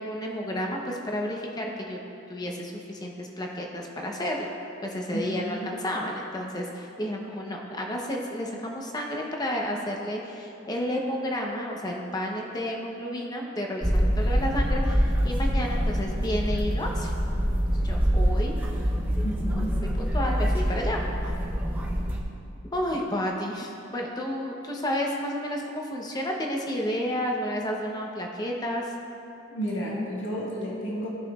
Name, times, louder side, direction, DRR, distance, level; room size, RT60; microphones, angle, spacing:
voice 1, 0.0-2.0 2.3-4.5 4.8-17.1 17.7-18.5 20.0-21.0 22.7-28.9, equal, 20° left, 0 dB, 0.9 m, -31 dB
sound 1, 13.8-22.2, equal, 10° right, 0.9 m, -25 dB
voice 2, 19.2-19.8 29.5-31.1, equal, 70° left, -6 dB, 1.7 m, -31 dB
16.0 x 6.0 x 2.5 m, 2.7 s
head